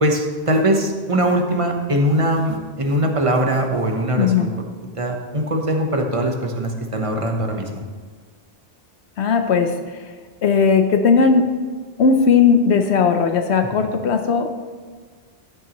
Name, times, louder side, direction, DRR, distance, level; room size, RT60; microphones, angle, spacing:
voice 1, 0.0-4.5 4.9-7.9, right 1 dB, 30° right, 2 dB, 1.0 m, -21 dB
voice 2, 4.2-4.5 9.2-10.1 10.4-11.5 12.0-14.5, left 5 dB, 75° left, 6 dB, 1.0 m, -17 dB
13.0 x 8.8 x 3.0 m, 1.5 s
omnidirectional pair, 1.1 m